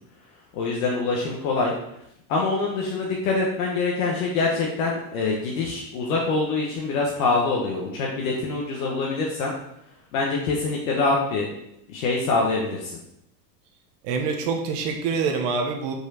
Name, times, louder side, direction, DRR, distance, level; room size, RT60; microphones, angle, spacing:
voice 1, 0.5-1.7 2.3-9.5 10.1-11.5 11.9-13.0, left 3 dB, 55° left, -2 dB, 1.4 m, -25 dB
voice 2, 14.0-15.9, right 5 dB, 35° right, 3 dB, 1.1 m, -25 dB
5.4 x 4.8 x 6.3 m, 0.77 s
supercardioid pair, 175°, 48 cm